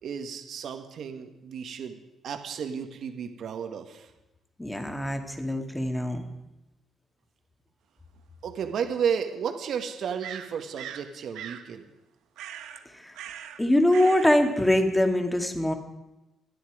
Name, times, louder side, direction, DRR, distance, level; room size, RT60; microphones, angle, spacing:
voice 1, 0.0-4.1 8.4-11.8, right 7 dB, 65° right, 6 dB, 1.6 m, -33 dB
voice 2, 4.6-6.2 12.9-13.1 13.6-15.7, left 1 dB, 10° left, 5 dB, 2.3 m, -23 dB
sound 1, 8.2-8.3 10.2-11.1 11.3-11.7 12.4-12.8 13.1-13.6 13.9-14.4, right 10 dB, 90° right, 1.2 m, -40 dB
26.0 x 10.0 x 5.0 m, 0.97 s
cardioid pair, 90°, 0 cm